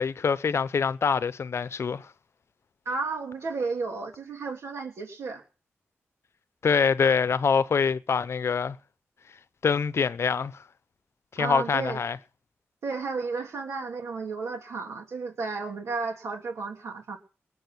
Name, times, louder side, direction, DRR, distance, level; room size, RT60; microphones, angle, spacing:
voice 1, 0.0-2.1 6.6-8.8 9.6-10.6 11.3-12.2, left 6 dB, 65° left, 0.8 m, -25 dB
voice 2, 2.8-5.4 11.4-12.0 12.8-17.2, right 4 dB, 80° right, 3.2 m, -33 dB
20.5 x 8.9 x 6.2 m
cardioid pair, 55°, 5 cm